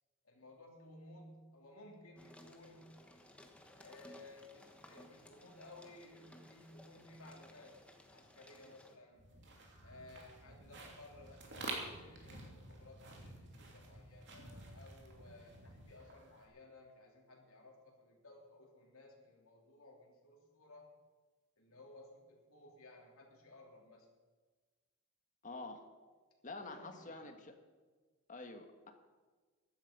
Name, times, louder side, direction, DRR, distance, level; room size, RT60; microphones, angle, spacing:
voice 1, 0.2-3.1 3.8-7.8 8.1-9.3 9.8-20.9 21.6-24.1 26.6-27.4, left 2 dB, 65° left, 0 dB, 3.3 m, -58 dB
sound 1, 2.2-9.0, left 1 dB, 5° left, 1.2 m, -60 dB
sound 2, 9.2-16.5, right 2 dB, 50° right, 2.8 m, -50 dB
voice 2, 25.4-25.8 26.4-27.5 28.3-28.9, left 3 dB, 35° left, 5 dB, 1.5 m, -47 dB
15.0 x 11.5 x 5.4 m, 1.4 s
head